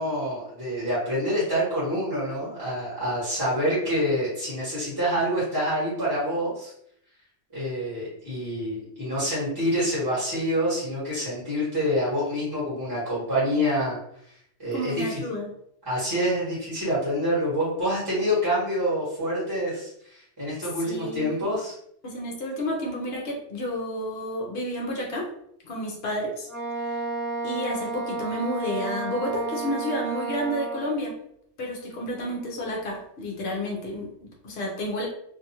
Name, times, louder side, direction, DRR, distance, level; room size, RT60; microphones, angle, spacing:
voice 1, 0.0-6.7 7.5-14.0 14.6-15.1 15.8-21.7, equal, 20° right, -9 dB, 1.3 m, -27 dB
voice 2, 14.7-15.5 20.8-21.4 22.0-25.3 25.6-26.5 26.9-27.0 27.4-31.1 31.6-35.1, equal, 60° left, -1 dB, 0.9 m, -31 dB
Wind instrument woodwind instrument, 26.4-31.0, right 3 dB, ahead, 0.6 m, -32 dB
2.7 x 2.4 x 2.9 m, 0.70 s
omnidirectional pair, 1.3 m